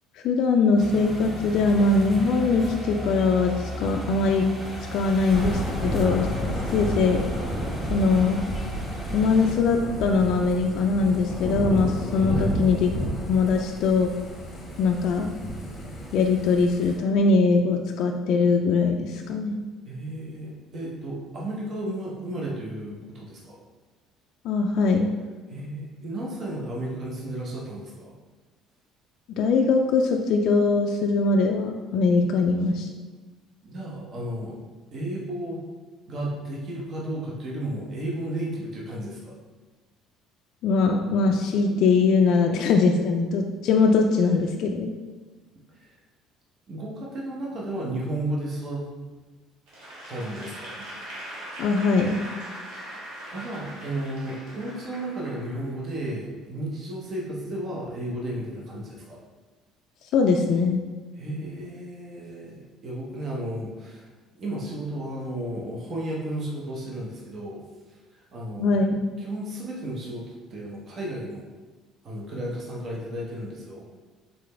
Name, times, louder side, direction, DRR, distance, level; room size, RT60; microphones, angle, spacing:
voice 1, 0.2-4.5 4.9-6.3 6.7-7.2 7.9-8.4 9.1-12.9 13.3-14.1 14.8-15.3 16.1-19.6 24.4-25.1 29.3-32.9 40.6-45.0 51.6-52.2 60.1-60.8 68.6-69.0, left 4 dB, 60° left, 2 dB, 0.3 m, -21 dB
sound 1, 0.8-9.5, equal, 10° right, 0.9 m, -36 dB
Thunder / Rain, 5.3-17.0, equal, 20° left, 0.9 m, -31 dB
voice 2, 19.9-23.6 25.5-28.1 33.6-34.6 34.9-35.6 36.1-39.3 45.7-46.0 46.7-48.9 50.1-50.9 53.3-59.2 61.2-64.1 64.3-67.6 67.9-68.8 69.2-70.2 70.5-71.4 72.0-73.8, right 1 dB, 35° right, -4 dB, 0.8 m, -33 dB
Applause / Crowd, 49.7-55.9, right 1 dB, 90° right, 1.3 m, -40 dB
4.0 x 3.8 x 3.3 m, 1.3 s
cardioid pair, 145°, 0 cm